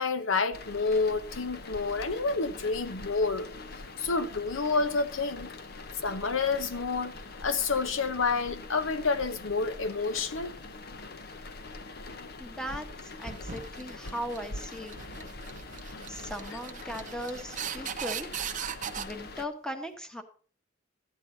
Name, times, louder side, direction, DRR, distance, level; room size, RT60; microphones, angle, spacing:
voice 1, 0.0-3.5 4.0-5.5 6.0-7.1 7.4-10.5, left 4 dB, 85° left, 0.9 m, -29 dB
sound 1, 0.5-19.5, left 3 dB, 55° left, 0.8 m, -44 dB
voice 2, 12.4-15.0 15.8-18.3 19.0-20.2, equal, 5° left, 1.1 m, -38 dB
sound 2, 13.2-19.1, right 8 dB, 40° right, 0.7 m, -39 dB
13.0 x 9.2 x 4.0 m
head